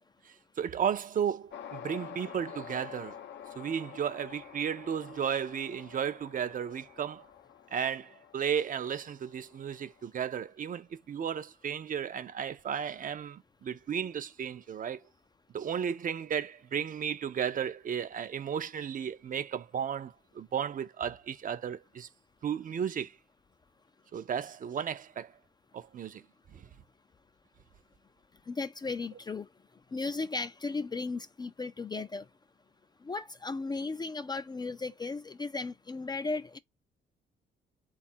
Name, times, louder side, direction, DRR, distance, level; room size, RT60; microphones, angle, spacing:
voice 1, 0.2-3.2 3.6-7.3 7.7-15.0 15.5-22.1 22.4-23.2 24.1-25.3 25.7-26.2 26.5-26.7, right 8 dB, 45° right, 0.5 m, -34 dB
sound 1, 1.5-10.0, left 9 dB, 65° left, 0.6 m, -48 dB
voice 2, 28.5-29.5 29.9-32.2 33.0-36.6, left 3 dB, 20° left, 0.3 m, -35 dB
3.6 x 2.4 x 4.2 m
cardioid pair, 90°, 20 cm